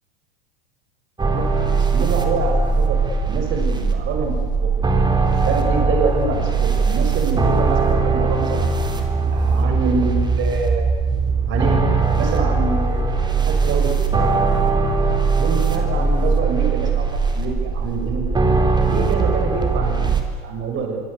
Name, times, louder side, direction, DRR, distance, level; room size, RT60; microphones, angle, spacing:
sound 1, 1.2-20.2, right 4 dB, 15° right, 3.9 m, -20 dB
voice 1, 1.3-3.0 3.2-4.7 5.0-8.7 9.2-10.9 11.5-11.9 12.2-13.1 13.5-14.7 15.3-17.1 17.3-18.3 18.9-21.0, right 4 dB, 40° right, 2 dB, 6.9 m, -26 dB
25.5 x 25.0 x 8.4 m, 1.5 s
hypercardioid pair, 105°, 30 cm